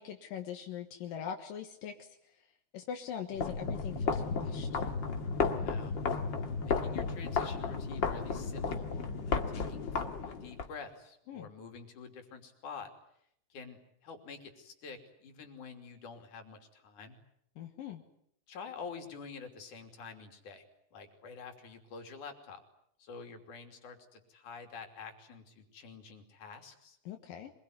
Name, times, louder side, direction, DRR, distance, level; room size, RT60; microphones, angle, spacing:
voice 1, 0.0-2.2 2.7-4.8 11.3-11.5 17.6-18.0 27.1-27.5, left 8 dB, 85° left, 4 dB, 3.2 m, -41 dB
sound 1, 3.3-10.7, left 5 dB, 40° left, 2.2 m, -33 dB
voice 2, 5.5-6.0 6.7-8.9 9.2-12.9 13.5-17.2 18.5-20.6 20.9-22.6 23.0-27.0, left 5 dB, 65° left, 5 dB, 4.3 m, -48 dB
25.5 x 21.5 x 9.5 m, 0.73 s
omnidirectional pair, 3.8 m